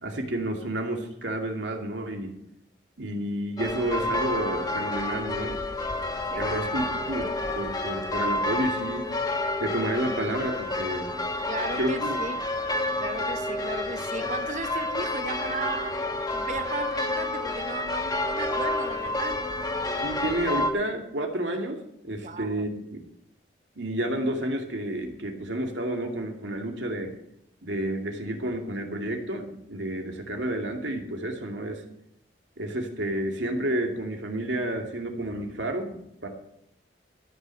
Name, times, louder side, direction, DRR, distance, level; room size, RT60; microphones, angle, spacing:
voice 1, 0.0-2.3 3.0-5.6 6.4-9.1 9.6-11.1 11.8-12.2 14.2-14.3 20.0-23.0 23.8-27.1 27.6-31.8 32.6-36.3, right 1 dB, 80° right, 2.3 m, -30 dB
sound 1, 3.6-20.7, left 2 dB, 20° left, 1.2 m, -29 dB
voice 2, 11.5-12.5 13.0-19.4 22.2-22.7, right 4 dB, 40° right, 0.7 m, -35 dB
14.0 x 6.2 x 7.7 m
head